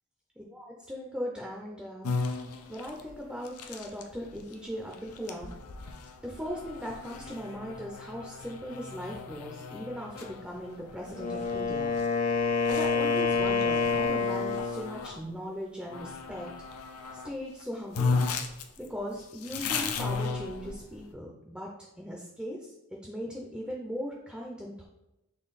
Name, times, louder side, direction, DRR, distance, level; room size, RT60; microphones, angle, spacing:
voice 1, 0.5-2.2 2.7-5.5 6.2-12.0 12.3-16.5 17.1-18.2 18.8-21.7 22.0-24.9, equal, 5° right, -1 dB, 0.4 m, -39 dB
sound 1, 2.0-15.2 15.9-17.3 17.6-17.7 17.9-21.0, left 4 dB, 85° left, 0.5 m, -36 dB
Wind instrument woodwind instrument, 11.0-14.9, left 5 dB, 35° left, 0.6 m, -27 dB
3.8 x 3.1 x 4.0 m, 0.92 s
head